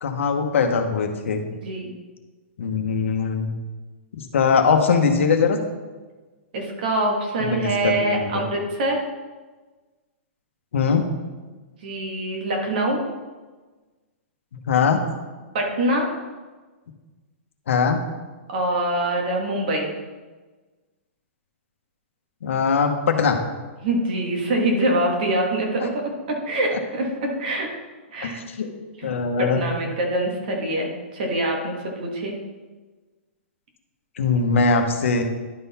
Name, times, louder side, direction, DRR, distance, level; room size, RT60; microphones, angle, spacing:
voice 1, 0.0-1.4 2.6-3.5 4.1-5.6 7.4-8.4 10.7-11.0 14.7-15.0 17.7-18.0 22.4-23.4 28.2-28.7 29.0-29.6 34.2-35.2, left 5 dB, 80° left, 5 dB, 1.1 m, -21 dB
voice 2, 6.5-9.0 11.8-13.0 15.5-16.1 18.5-19.9 23.8-27.7 28.1-28.4 29.0-29.1 29.4-32.4, right 1 dB, 45° right, 1 dB, 1.5 m, -24 dB
11.0 x 3.9 x 4.2 m, 1.3 s
hypercardioid pair, 180°, 7 cm